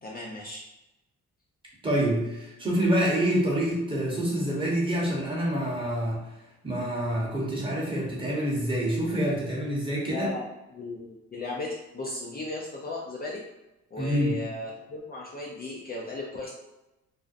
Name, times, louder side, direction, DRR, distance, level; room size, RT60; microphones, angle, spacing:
voice 1, 0.0-0.6 10.1-10.4 10.7-13.4 13.9-16.5, left 2 dB, 30° left, -3 dB, 0.4 m, -36 dB
voice 2, 1.8-6.2 6.6-10.3 14.0-14.4, right 1 dB, 15° right, -4 dB, 0.9 m, -27 dB
2.5 x 2.0 x 2.5 m, 0.98 s
cardioid pair, 90°, 30 cm